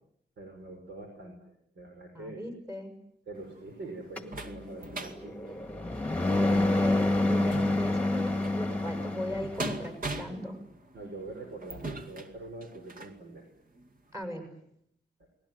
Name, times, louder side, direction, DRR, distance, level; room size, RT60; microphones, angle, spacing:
voice 1, 0.4-2.4 3.3-5.5 10.9-13.5, right 2 dB, 80° right, 3 dB, 5.5 m, -44 dB
voice 2, 2.1-2.9 6.3-10.6 14.1-14.5, equal, 15° right, 6 dB, 6.7 m, -37 dB
sound 1, 3.4-13.2 13.8-13.9 14.2-14.3, right 2 dB, 50° right, 2.3 m, -42 dB
sound 2, 4.2-9.7, left 2 dB, 5° left, 2.0 m, -28 dB
29.5 x 20.5 x 9.3 m, 0.74 s
wide cardioid pair, 160°, 18 cm